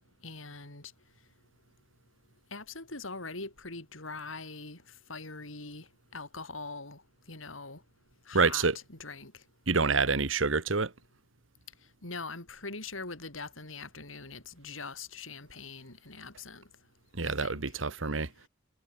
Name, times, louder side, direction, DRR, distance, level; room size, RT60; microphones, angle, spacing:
voice 1, 0.2-0.9 2.5-7.0 7.3-7.8 8.2-9.4 12.0-16.7 17.2-17.5, left 3 dB, 85° left, 6.2 m, -42 dB
voice 2, 8.3-8.8 9.7-10.9 17.1-18.5, right 4 dB, 70° right, 1.5 m, -27 dB
head